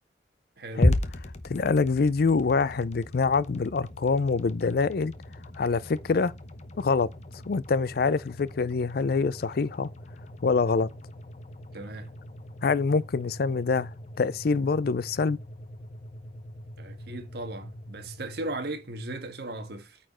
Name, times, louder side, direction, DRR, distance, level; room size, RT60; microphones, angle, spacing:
voice 1, 0.6-0.9 11.7-12.1 16.8-20.0, right 2 dB, 60° right, 1.6 m, -37 dB
sound 1, 0.8-19.0, left 1 dB, 40° left, 0.9 m, -36 dB
voice 2, 1.4-5.1 5.5-6.3 6.8-7.1 7.5-9.9 10.4-10.9 12.6-13.9 14.2-15.4, left 4 dB, 55° left, 0.4 m, -25 dB
9.2 x 4.3 x 4.3 m
head